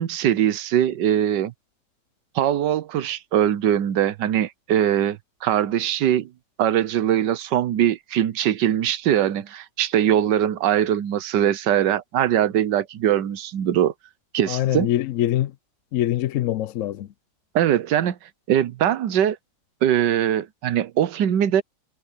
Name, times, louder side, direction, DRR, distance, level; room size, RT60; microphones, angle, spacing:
voice 1, 0.0-1.5 2.3-6.3 6.6-13.9 14.3-14.9 17.5-18.2 18.5-19.4 19.8-21.6, right 10 dB, 90° right, 1.5 m, -21 dB
voice 2, 14.5-15.5 15.9-17.1, left 13 dB, 70° left, 0.7 m, -23 dB
omnidirectional pair, 1.8 m